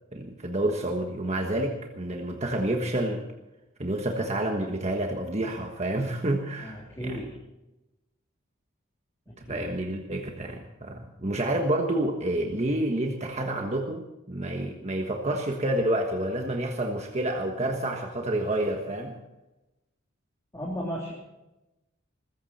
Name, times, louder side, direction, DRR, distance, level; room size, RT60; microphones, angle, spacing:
voice 1, 0.1-3.2 3.8-6.7 7.0-7.2 9.5-19.1, right 1 dB, 35° right, 2 dB, 1.4 m, -29 dB
voice 2, 6.6-7.3 9.3-9.7 20.5-21.1, equal, 15° left, -4 dB, 3.1 m, -35 dB
20.5 x 15.0 x 4.3 m, 0.99 s
head